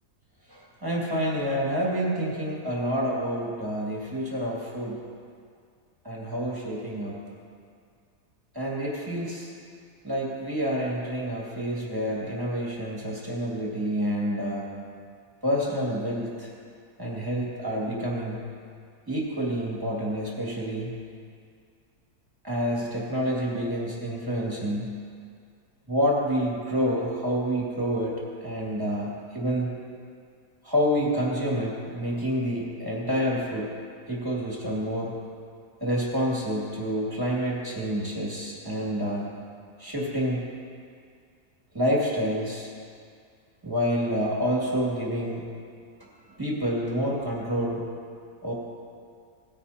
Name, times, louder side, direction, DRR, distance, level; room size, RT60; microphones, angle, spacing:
voice 1, 0.5-5.0 6.0-7.2 8.5-9.5 10.0-14.6 15.4-16.5 17.0-18.4 19.1-20.9 22.4-24.9 25.9-29.8 30.6-33.7 34.1-35.1 35.8-39.3 39.8-40.5 41.7-42.7 43.6-45.4 46.3-47.8 48.4-48.5, equal, 15° right, -5 dB, 2.1 m, -28 dB
18.0 x 10.0 x 2.8 m, 2.2 s
omnidirectional pair, 1.7 m